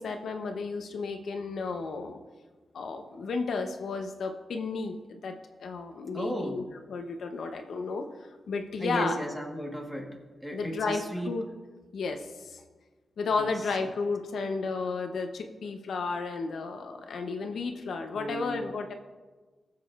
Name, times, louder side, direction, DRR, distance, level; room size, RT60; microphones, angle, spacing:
voice 1, 0.0-2.2 2.7-5.4 5.6-6.6 6.9-8.1 8.5-9.2 10.5-11.4 11.9-12.6 13.2-18.9, left 4 dB, 75° left, 5 dB, 0.8 m, -33 dB
voice 2, 6.1-6.6 8.8-10.2 10.4-11.3 13.3-13.7 18.1-18.6, equal, 5° right, 1 dB, 1.3 m, -35 dB
20.0 x 7.5 x 2.5 m, 1.3 s
wide cardioid pair, 165°, 0 cm